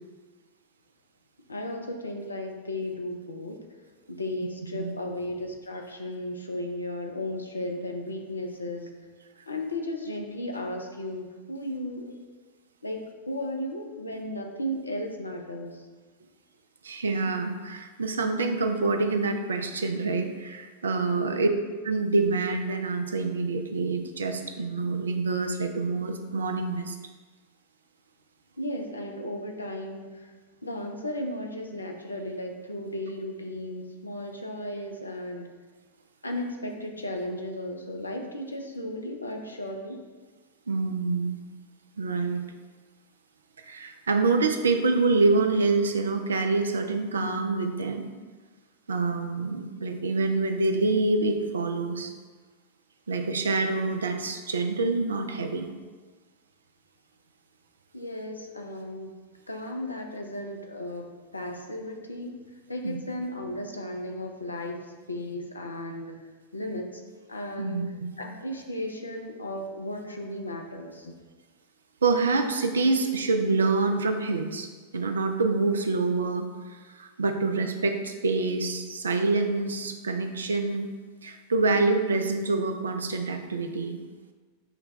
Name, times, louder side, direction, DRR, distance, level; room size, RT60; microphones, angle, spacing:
voice 1, 1.5-3.6 4.1-9.0 9.5-12.2 12.8-15.9 21.1-21.6 28.6-30.3 30.6-35.5 36.2-40.0 57.9-59.1 59.5-62.4 62.7-66.2 66.5-67.0 67.3-67.9 68.2-71.1, left 1 dB, 80° left, 3 dB, 0.5 m, -35 dB
voice 2, 16.8-21.5 21.8-27.0 40.7-41.4 42.0-42.4 43.6-48.1 48.9-52.1 53.1-55.7 62.8-63.0 67.6-68.2 72.0-74.7 74.9-80.9 81.2-84.0, right 3 dB, 70° right, 6 dB, 0.4 m, -26 dB
5.7 x 2.2 x 4.0 m, 1.4 s
figure-of-eight pair, 90°, 0 cm